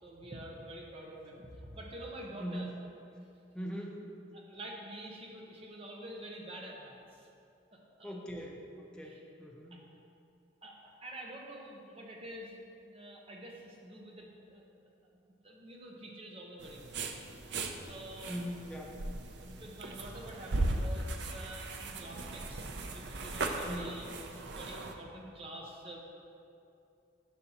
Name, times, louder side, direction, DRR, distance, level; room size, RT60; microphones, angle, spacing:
voice 1, 0.0-2.7 4.3-7.3 7.7-8.2 9.0-9.2 9.7-9.8 10.6-12.5 12.8-14.6 15.4-18.3 18.8-18.9 19.4-24.1 24.5-26.0, right 1 dB, 30° right, -2 dB, 0.9 m, -47 dB
voice 2, 2.4-2.8 3.5-4.1 8.0-9.8 18.3-19.0 23.6-24.0, equal, 5° left, -1 dB, 0.6 m, -41 dB
sound 1, 16.6-24.9, right 2 dB, 60° right, 0.5 m, -38 dB
10.5 x 5.2 x 2.9 m, 2.7 s
head